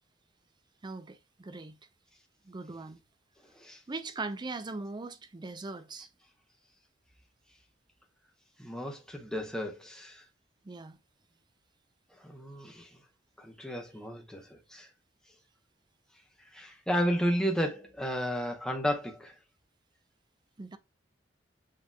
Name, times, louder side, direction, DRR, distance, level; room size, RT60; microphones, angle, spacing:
voice 1, 0.8-1.8 2.5-3.0 3.9-6.1 10.6-11.0 20.6-20.8, right 3 dB, 25° right, 0.4 m, -40 dB
voice 2, 8.6-10.2 12.2-12.9 13.4-14.9 16.5-19.3, equal, 5° left, 0.8 m, -33 dB
7.4 x 2.9 x 2.2 m
head